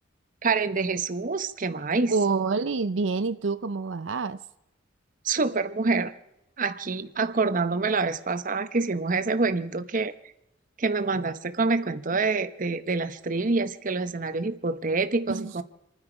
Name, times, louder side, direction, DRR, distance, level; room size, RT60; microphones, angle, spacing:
voice 1, 0.4-2.1 5.2-6.1 6.6-10.1 10.8-15.6, right 3 dB, 45° right, 11 dB, 0.9 m, -26 dB
voice 2, 2.1-4.4 15.3-15.5, right 4 dB, 85° right, 12 dB, 0.6 m, -27 dB
28.5 x 9.8 x 5.0 m, 0.87 s
head